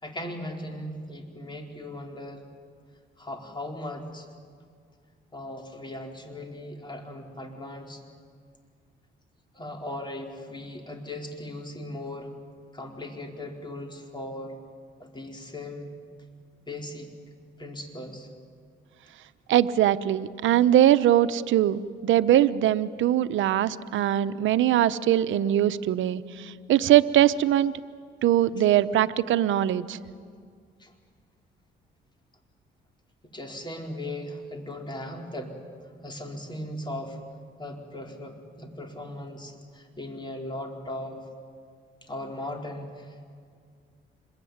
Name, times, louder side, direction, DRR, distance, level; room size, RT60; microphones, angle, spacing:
voice 1, 0.0-2.4 3.2-4.3 5.3-8.0 9.5-12.3 12.7-14.5 15.0-15.9 16.7-17.1 17.6-18.3 30.8-30.9 33.3-35.5 36.0-37.2 37.6-41.2 42.1-43.2, left 1 dB, 25° left, 2 dB, 4.4 m, -38 dB
voice 2, 19.5-27.7 28.2-30.0, right 12 dB, 80° right, 13 dB, 0.9 m, -22 dB
26.0 x 22.0 x 9.5 m, 2.1 s
cardioid pair, 90°, 20 cm